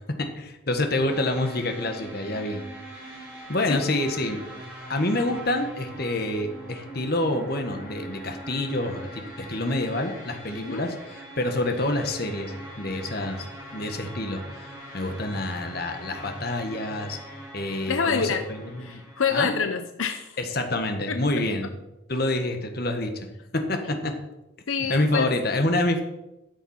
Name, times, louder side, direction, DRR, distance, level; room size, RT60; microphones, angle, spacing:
voice 1, 0.2-2.6 2.9-3.2 3.5-4.4 4.9-13.5 13.7-17.2 17.5-19.0 19.3-19.5 20.4-21.7 22.1-23.3 23.5-24.1 24.9-26.0, left 1 dB, 50° left, 5 dB, 1.5 m, -27 dB
sound 1, 1.1-19.3, right 1 dB, 5° right, 3.8 m, -42 dB
voice 2, 10.5-10.9 17.9-18.4 18.8-20.4 21.1-21.2 24.7-25.3, left 6 dB, 85° left, 8 dB, 0.8 m, -27 dB
13.0 x 7.2 x 5.7 m, 0.96 s
head